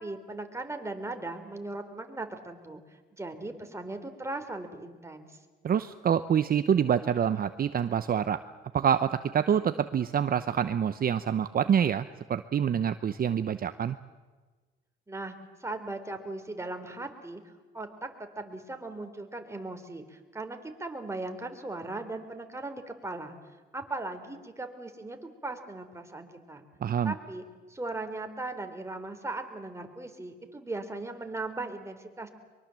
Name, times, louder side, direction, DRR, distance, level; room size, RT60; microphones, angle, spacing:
voice 1, 0.0-2.8 3.1-5.3 15.1-17.4 17.7-18.1 18.4-23.4 23.7-26.7 27.0-27.4 27.7-32.3, right 2 dB, 15° right, 6 dB, 3.3 m, -38 dB
voice 2, 5.6-8.4 8.7-14.0 26.8-27.1, right 8 dB, 50° right, 11 dB, 0.8 m, -26 dB
23.5 x 23.0 x 7.6 m, 1.3 s
cardioid pair, 90°, 20 cm